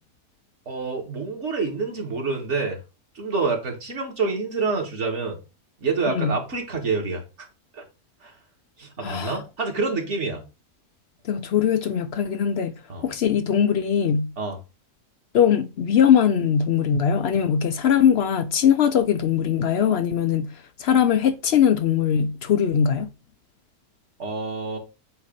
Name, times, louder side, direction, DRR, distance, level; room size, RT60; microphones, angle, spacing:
voice 1, 0.6-2.8 3.1-5.4 5.8-7.2 7.7-7.8 8.2-8.3 8.8-10.4 12.9-13.1 14.4-14.6 24.2-24.8, right 4 dB, 45° right, 1.8 m, -27 dB
voice 2, 6.1-6.4 9.0-9.4 11.2-12.7 13.0-14.3 15.3-23.1, left 8 dB, 70° left, 0.6 m, -21 dB
8.0 x 2.7 x 5.1 m
omnidirectional pair, 1.7 m